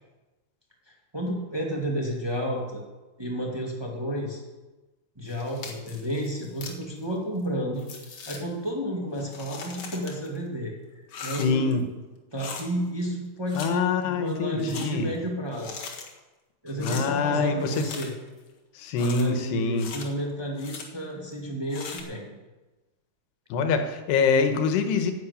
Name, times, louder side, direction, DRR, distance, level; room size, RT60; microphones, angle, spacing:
voice 1, 0.9-2.8 3.2-4.4 5.1-7.8 8.3-10.7 11.2-11.8 12.3-15.8 16.6-18.1 19.0-22.2, equal, 30° right, -2 dB, 0.5 m, -31 dB
sound 1, 5.3-6.8 7.4-7.5 7.8-8.4 9.1-10.4 11.1-11.7 12.4-12.7 13.5-13.7 14.0-14.9 15.5-16.1 16.7-17.0 17.6-18.3 19.0-19.2 19.8-20.0 20.6-20.8 21.7-22.0, left 5 dB, 50° left, 2.3 m, -40 dB
voice 2, 11.4-11.8 13.5-15.1 16.8-17.8 18.7-19.9 23.5-25.1, left 5 dB, 90° left, 7 dB, 3.3 m, -25 dB
10.5 x 9.2 x 8.4 m, 1.1 s
omnidirectional pair, 4.6 m